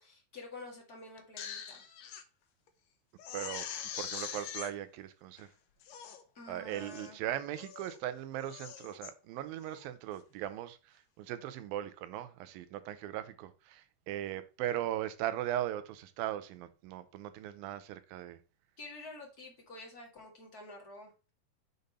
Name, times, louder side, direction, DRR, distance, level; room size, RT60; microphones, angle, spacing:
voice 1, 0.0-1.9 6.3-7.2 18.8-21.3, left 2 dB, 35° left, 1.6 m, -49 dB
Crying sobbing, 1.2-2.2 2.7-2.8 3.2-4.7 5.4-5.5 5.8-6.2 6.7-7.1 7.5-8.0 8.4-9.1 9.6-9.9, left 8 dB, 75° left, 2.3 m, -43 dB
voice 2, 3.3-3.7 4.0-5.5 6.5-18.4, right 12 dB, 85° right, 2.4 m, -38 dB
6.8 x 4.0 x 5.2 m
omnidirectional pair, 4.1 m